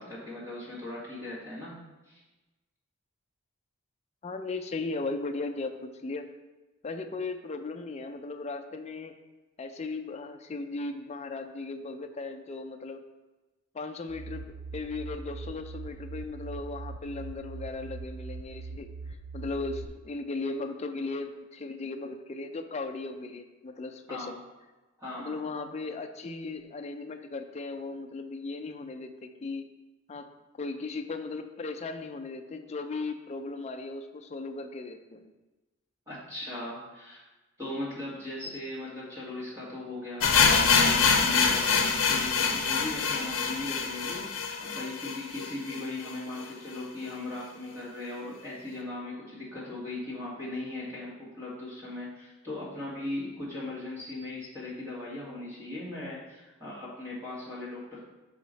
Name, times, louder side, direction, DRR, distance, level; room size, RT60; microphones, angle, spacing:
voice 1, 0.0-1.8 2.1-2.2 24.1-24.4 25.0-25.4 36.1-37.2 37.6-58.0, left 2 dB, 15° right, -7 dB, 2.0 m, -38 dB
voice 2, 4.2-6.3 6.8-9.2 9.6-13.0 13.7-18.9 19.3-24.4 25.2-29.6 30.1-30.3 30.6-35.3, left 3 dB, 30° left, 6 dB, 0.4 m, -37 dB
sound 1, 14.1-19.9, right 3 dB, 40° right, 0.4 m, -41 dB
sound 2, 40.2-46.1 46.4-46.5 46.7-46.8 47.4-47.5, left 5 dB, 75° left, 0.7 m, -25 dB
5.5 x 5.0 x 4.0 m, 1.1 s
head